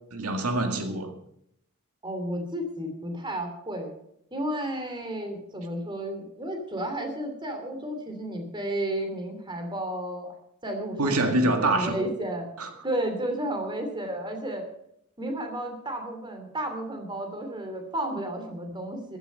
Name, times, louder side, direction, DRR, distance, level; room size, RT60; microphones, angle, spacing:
voice 1, 0.1-1.1 11.0-12.0 12.6-12.7, right 2 dB, 85° right, 6 dB, 1.9 m, -25 dB
voice 2, 2.0-3.9 4.3-10.3 10.6-12.5 12.8-14.6 15.2-19.2, right 1 dB, 20° right, 5 dB, 2.9 m, -32 dB
15.0 x 12.0 x 5.5 m, 0.74 s
head